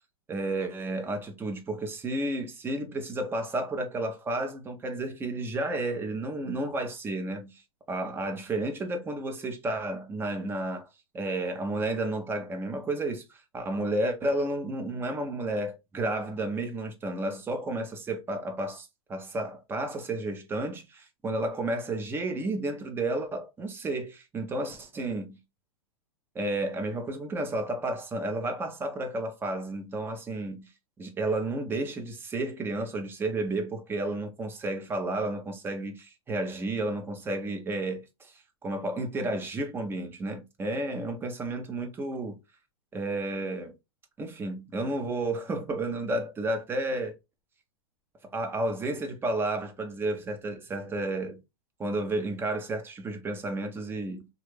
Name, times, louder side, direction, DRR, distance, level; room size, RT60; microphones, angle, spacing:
voice 1, 0.3-7.6 7.9-10.9 11.1-25.4 26.3-30.7 31.0-38.3 38.6-42.4 42.9-43.7 44.2-47.1 48.3-51.4 51.8-54.3, right 2 dB, 10° right, 0.6 m, -32 dB
3.2 x 2.4 x 3.2 m
hypercardioid pair, 135°, 19 cm